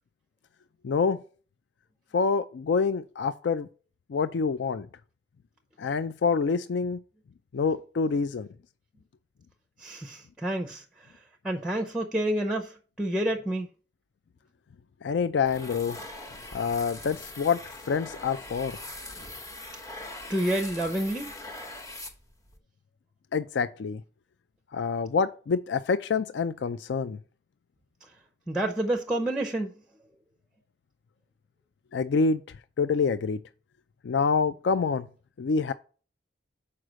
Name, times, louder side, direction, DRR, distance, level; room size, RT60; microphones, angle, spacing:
voice 1, 0.8-1.2 2.1-3.7 4.1-4.9 5.8-7.0 7.5-8.5 15.0-16.0 16.5-17.6 17.9-18.8 23.3-24.0 24.7-27.2 31.9-32.4 32.8-33.4 34.0-35.1 35.4-35.7, left 5 dB, 70° left, 0.4 m, -26 dB
voice 2, 9.8-10.8 11.4-13.7 20.3-21.3 28.5-29.7, right 1 dB, 5° right, 0.6 m, -29 dB
sound 1, 15.5-22.6, left 2 dB, 20° left, 1.0 m, -42 dB
6.4 x 4.8 x 6.2 m
head